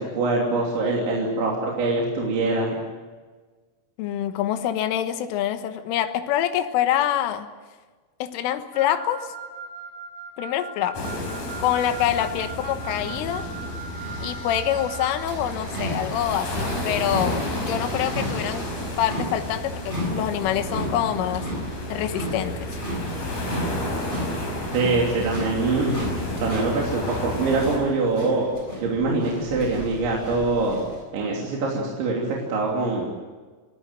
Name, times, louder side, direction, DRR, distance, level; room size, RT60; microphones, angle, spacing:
voice 1, 0.0-2.8 24.7-25.9 26.4-28.5 28.8-30.8 31.1-33.1, right 3 dB, 65° right, -2 dB, 5.3 m, -24 dB
voice 2, 4.0-7.5 8.2-9.3 10.4-11.1 11.6-13.5 14.2-18.7 19.0-21.5 21.9-22.7, left 11 dB, 75° left, 8 dB, 3.7 m, -26 dB
Wind instrument woodwind instrument, 8.7-15.2, right 3 dB, 55° left, 8.3 m, -39 dB
sound 1, 10.9-27.8, left 1 dB, 40° left, 6.7 m, -31 dB
sound 2, 12.8-31.0, right 1 dB, 10° right, 6.8 m, -35 dB
27.5 x 20.0 x 7.7 m, 1.4 s
omnidirectional pair, 6.0 m